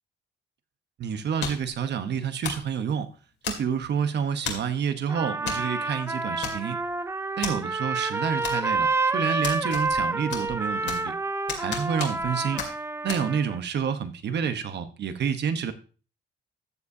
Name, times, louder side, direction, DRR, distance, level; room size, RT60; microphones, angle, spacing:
voice 1, 1.0-3.1 3.5-6.8 7.4-11.1 11.6-12.6 13.0-15.7, right 7 dB, 60° right, 10 dB, 1.0 m, -29 dB
sound 1, 1.4-1.8 2.4-2.7 3.4-3.9 4.5-4.7 5.5-5.7 5.9-6.0 6.4-6.9 7.4-7.6 8.4-8.9 9.4-10.0 10.3-11.1 11.5-12.3 12.6-12.7 13.1-13.2, left 6 dB, 65° left, 2.3 m, -33 dB
Trumpet, 5.1-13.6, right 3 dB, 15° right, 0.5 m, -29 dB
13.5 x 7.3 x 2.7 m, 0.37 s
cardioid pair, 90°, 20 cm